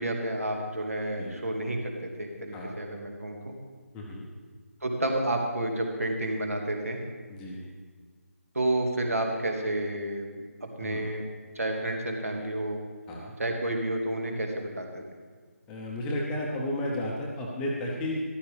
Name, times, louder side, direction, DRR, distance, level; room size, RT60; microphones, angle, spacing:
voice 1, 0.0-3.5 4.8-7.0 8.5-11.2 11.5-12.8 13.4-15.0, right 1 dB, 65° right, 2 dB, 2.2 m, -30 dB
voice 2, 3.9-4.3 7.3-7.6 10.8-11.0 13.1-13.3 15.7-18.2, left 1 dB, 10° left, -2 dB, 0.9 m, -33 dB
14.0 x 12.0 x 3.5 m, 1.5 s
figure-of-eight pair, 155°, 8 cm